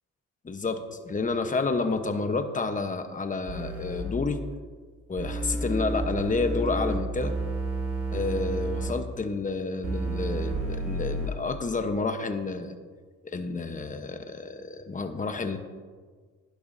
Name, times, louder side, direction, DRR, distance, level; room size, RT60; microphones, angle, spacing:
voice 1, 0.4-4.4 5.1-7.3 8.1-12.7 13.2-15.6, left 3 dB, 25° left, 7 dB, 1.1 m, -30 dB
sound 1, 3.5-4.0 5.2-8.9 9.8-11.3, right 2 dB, 70° right, 4.0 m, -31 dB
17.0 x 11.0 x 2.8 m, 1.5 s
cardioid pair, 90°, 30 cm